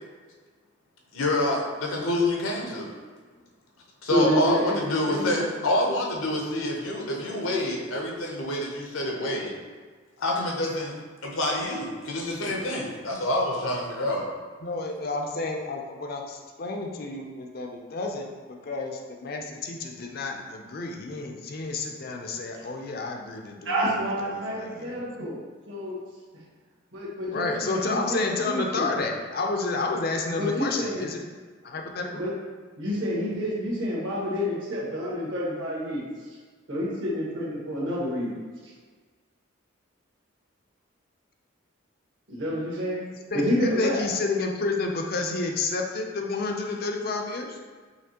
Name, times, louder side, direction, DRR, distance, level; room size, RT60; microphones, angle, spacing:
voice 1, 1.1-2.9 4.0-9.5 10.2-10.9 11.2-14.3, left 1 dB, 85° left, -1 dB, 0.8 m, -27 dB
voice 2, 4.1-5.4 23.6-25.4 25.7-26.0 26.9-28.9 30.4-31.0 32.1-32.3 32.8-36.0 36.7-38.4 38.6-38.7 42.3-43.0 43.3-44.0, equal, 65° right, -6 dB, 1.3 m, -28 dB
voice 3, 14.6-18.3 18.6-25.0 27.3-31.2 31.6-32.2 43.1-47.6, left 3 dB, 45° left, 2 dB, 0.4 m, -30 dB
5.7 x 2.8 x 2.8 m, 1.5 s
head